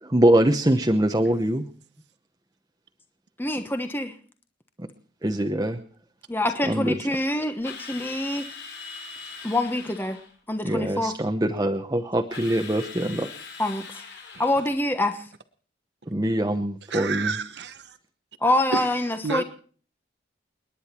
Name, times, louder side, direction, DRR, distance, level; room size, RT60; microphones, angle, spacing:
voice 1, 0.0-1.6 4.8-4.9 5.2-5.8 6.7-6.9 10.6-13.3 16.1-17.3, right 1 dB, 20° right, 1.0 m, -23 dB
voice 2, 3.4-4.1 6.3-8.5 9.4-10.2 10.5-11.1 13.6-13.9 14.4-15.2 18.4-19.4, left 1 dB, 10° left, 1.1 m, -25 dB
Drill, 7.6-10.3 12.3-14.8, left 5 dB, 70° left, 7.0 m, -41 dB
voice 3, 16.9-18.0 18.7-18.9 19.2-19.4, right 4 dB, 65° right, 1.0 m, -30 dB
30.0 x 10.5 x 4.4 m
head